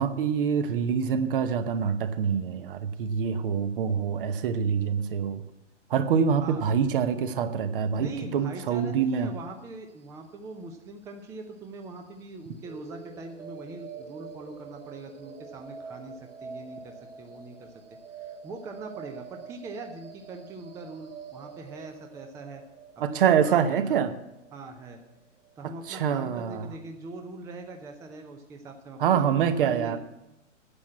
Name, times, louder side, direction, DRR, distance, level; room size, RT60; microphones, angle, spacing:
voice 1, 0.0-5.4 5.9-9.3 23.0-24.1 25.6-26.6 29.0-30.0, right 7 dB, 45° right, 11 dB, 0.9 m, -25 dB
voice 2, 6.4-6.7 8.0-17.7 18.2-22.6 23.1-24.2 24.5-25.0 25.6-30.0, right 3 dB, 10° right, 4 dB, 0.6 m, -42 dB
sound 1, 12.6-26.6, right 6 dB, 75° right, 3.3 m, -46 dB
9.9 x 7.4 x 7.4 m, 0.92 s
figure-of-eight pair, 120°, 37 cm